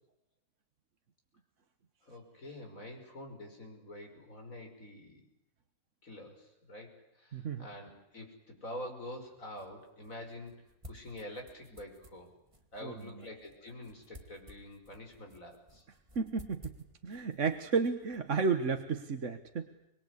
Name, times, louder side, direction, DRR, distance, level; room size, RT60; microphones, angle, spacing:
voice 1, 2.0-5.2 6.0-12.3 12.7-15.8, left 1 dB, 55° left, 3 dB, 6.2 m, -47 dB
voice 2, 7.3-7.7 12.8-12.9 16.1-16.7 17.0-19.7, right 5 dB, 50° right, 7 dB, 1.6 m, -32 dB
sound 1, 9.2-19.0, equal, 20° right, 2.5 m, -57 dB
26.0 x 21.5 x 9.8 m, 0.83 s
omnidirectional pair, 1.7 m